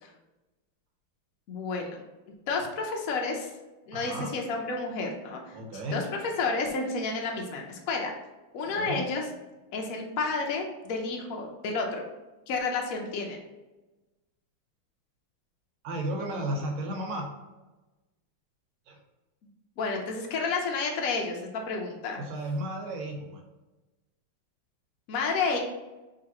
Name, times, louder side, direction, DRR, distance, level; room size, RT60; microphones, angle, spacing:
voice 1, 1.5-2.0 2.5-3.5 3.9-5.5 5.9-8.1 8.5-9.2 9.7-12.0 12.5-13.4 19.8-22.2 25.1-25.6, left 4 dB, 80° left, 1 dB, 0.7 m, -30 dB
voice 2, 3.9-4.3 5.5-6.1 8.7-9.0 15.8-17.3 18.9-19.0 22.2-23.4, right 1 dB, 80° right, 1 dB, 1.6 m, -33 dB
5.1 x 3.0 x 2.8 m, 1.1 s
omnidirectional pair, 2.3 m